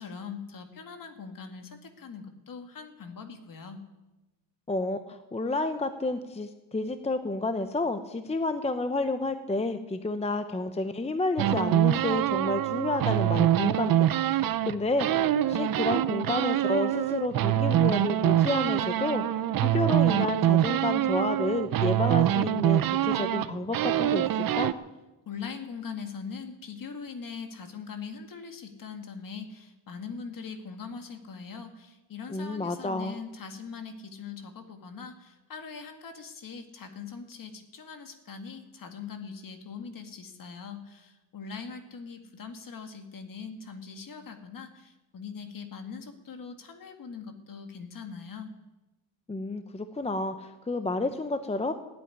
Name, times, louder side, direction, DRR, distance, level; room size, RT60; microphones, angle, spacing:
voice 1, 0.0-3.8 25.3-48.5, left 5 dB, 45° left, 6 dB, 2.1 m, -41 dB
voice 2, 4.7-24.7 32.3-33.2 49.3-51.7, left 2 dB, 15° left, 9 dB, 0.8 m, -30 dB
sound 1, 11.4-14.7 15.0-24.7, right 12 dB, 50° right, 0.7 m, -25 dB
16.5 x 8.8 x 9.9 m, 1.1 s
cardioid pair, 115°, 44 cm